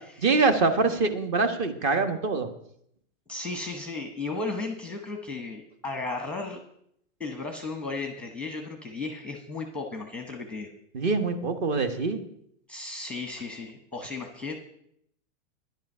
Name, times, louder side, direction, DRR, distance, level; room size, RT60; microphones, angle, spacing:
voice 1, 0.2-2.5 10.9-12.2, right 3 dB, 35° right, 8 dB, 1.3 m, -24 dB
voice 2, 3.3-6.6 7.2-10.7 12.7-14.6, left 3 dB, 5° left, 4 dB, 0.9 m, -35 dB
10.5 x 10.5 x 5.5 m, 0.72 s
hypercardioid pair, 155°, 39 cm